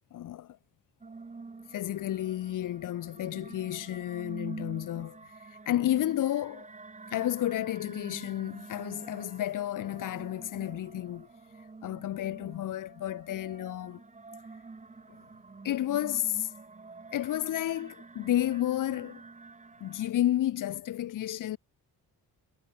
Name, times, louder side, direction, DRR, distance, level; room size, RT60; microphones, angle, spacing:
voice 1, 0.1-0.6 1.7-5.3 5.7-6.7 7.1-11.3 11.8-14.0 15.1-15.2 15.6-16.5 17.1-19.2 19.8-21.6, left 13 dB, 55° left, 0.5 m, -31 dB
sound 1, 1.0-20.1, right 3 dB, 20° right, 1.3 m, -48 dB
cardioid pair, 130°, 39 cm